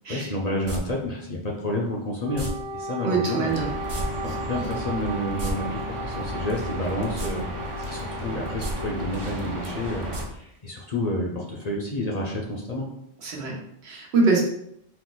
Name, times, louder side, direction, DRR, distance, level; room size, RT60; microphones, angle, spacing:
voice 1, 0.1-3.5 4.2-12.9, left 1 dB, 45° left, -2 dB, 0.6 m, -30 dB
sound 1, 0.6-0.8 2.3-2.5 3.9-4.0 4.3-4.4 5.2-5.5 7.1-7.3 7.7-7.8 8.5-8.7 10.1-10.2 10.5-10.6, right 1 dB, 50° right, 1.1 m, -31 dB
Wind instrument woodwind instrument, 2.2-9.9, right 1 dB, 90° right, 1.0 m, -36 dB
voice 2, 3.0-3.7 13.2-14.4, right 4 dB, 70° right, -1 dB, 1.2 m, -24 dB
sound 2, 3.5-10.2, equal, 35° right, 0.6 m, -34 dB
4.3 x 2.4 x 3.9 m, 0.75 s
omnidirectional pair, 1.2 m